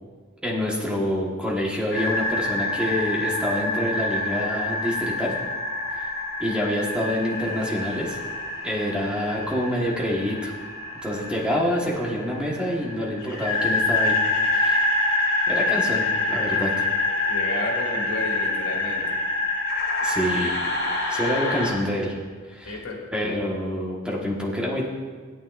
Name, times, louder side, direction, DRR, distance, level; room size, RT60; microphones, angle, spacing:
voice 1, 0.4-5.3 5.9-6.1 6.4-8.2 8.6-10.5 11.0-14.2 14.4-14.9 15.5-16.9 20.0-20.5 21.1-22.1 22.5-22.8 23.1-24.9, equal, 5° right, -4 dB, 1.4 m, -27 dB
sound 1, 1.9-21.7, left 2 dB, 70° left, 3.4 m, -26 dB
voice 2, 17.3-19.2 22.6-23.0, left 2 dB, 85° left, -1 dB, 2.0 m, -32 dB
17.0 x 8.7 x 2.6 m, 1.5 s
head